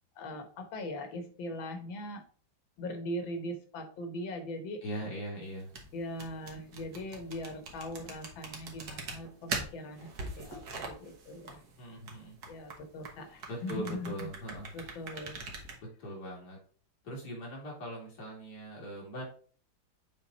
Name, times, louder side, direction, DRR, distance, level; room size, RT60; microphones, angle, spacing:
voice 1, 0.2-2.2 2.8-4.8 5.9-11.6 12.5-14.3 14.7-15.7, left 1 dB, 85° left, 6 dB, 1.8 m, -40 dB
voice 2, 4.8-5.8 11.8-12.5 13.5-14.7 16.0-16.6 17.0-19.2, equal, 55° left, -3 dB, 2.9 m, -40 dB
sound 1, 5.5-15.8, right 3 dB, 60° right, 1.7 m, -42 dB
7.2 x 3.6 x 4.0 m, 0.43 s
omnidirectional pair, 2.1 m